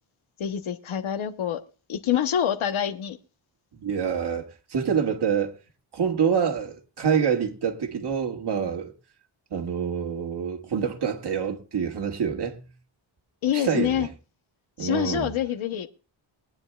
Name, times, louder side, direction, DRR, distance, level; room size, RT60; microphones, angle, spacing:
voice 1, 0.4-1.6 1.9-3.2 13.4-14.1 14.8-15.9, left 10 dB, 85° left, 1.0 m, -26 dB
voice 2, 3.8-5.5 5.9-8.9 9.5-12.7 13.5-14.1 14.8-15.3, right 7 dB, 55° right, 1.9 m, -26 dB
22.5 x 9.7 x 2.3 m
wide cardioid pair, 145°, 47 cm